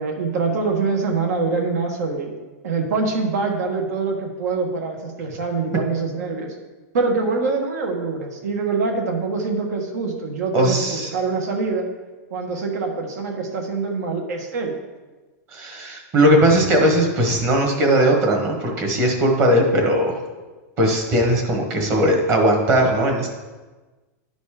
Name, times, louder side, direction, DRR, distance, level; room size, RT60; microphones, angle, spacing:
voice 1, 0.0-2.3 2.6-6.5 6.9-11.9 12.3-14.7, right 4 dB, 75° right, 2 dB, 1.5 m, -24 dB
voice 2, 10.5-11.1 15.5-20.2 20.8-23.3, right 1 dB, 25° right, 1 dB, 1.3 m, -18 dB
11.0 x 4.1 x 4.9 m, 1.2 s
supercardioid pair, 170°, 9 cm